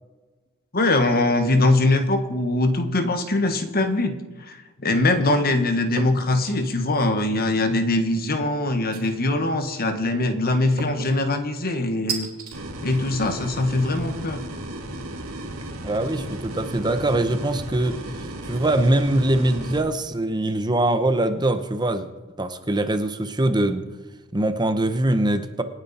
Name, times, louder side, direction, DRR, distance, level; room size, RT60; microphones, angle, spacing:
voice 1, 0.7-12.3 12.8-14.5, left 2 dB, 45° left, 8 dB, 1.5 m, -22 dB
sound 1, 6.0-6.3 6.7-7.2 8.9-9.5 10.8-11.1 12.1-12.6, right 5 dB, 45° right, 3.2 m, -34 dB
sound 2, 12.5-19.8, right 1 dB, 70° right, 2.1 m, -35 dB
voice 2, 15.8-22.1 22.4-23.9 24.3-25.6, right 1 dB, 20° right, 9 dB, 0.8 m, -23 dB
27.0 x 9.2 x 4.3 m, 1.3 s
head